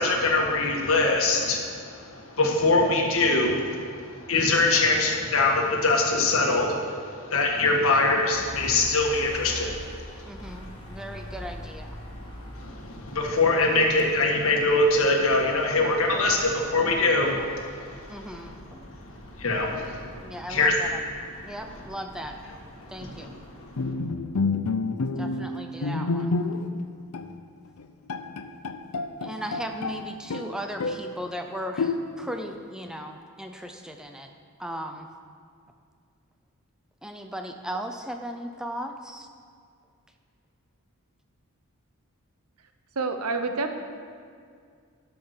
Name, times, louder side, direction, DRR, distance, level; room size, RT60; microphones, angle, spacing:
voice 1, 0.0-10.6 12.2-12.3 12.5-18.3 18.8-20.1 20.5-20.7 23.0-23.3 23.6-23.7, left 3 dB, 70° left, 1 dB, 1.5 m, -24 dB
sound 1, 8.3-23.8, left 1 dB, 25° left, 1.7 m, -44 dB
voice 2, 10.2-12.0 18.1-19.0 20.2-21.0 21.4-22.4 22.9-23.4 25.2-26.4 29.2-34.3 34.6-35.1 37.0-39.3, equal, 5° right, 4 dB, 0.5 m, -37 dB
Bowed string instrument, 23.8-26.8 27.1-27.3 27.8-27.9 28.1-30.0 30.3-31.1 31.8-32.4, left 3 dB, 90° left, 0.6 m, -28 dB
voice 3, 43.0-43.7, right 3 dB, 85° right, 6 dB, 0.9 m, -27 dB
12.0 x 5.8 x 6.6 m, 2.2 s
head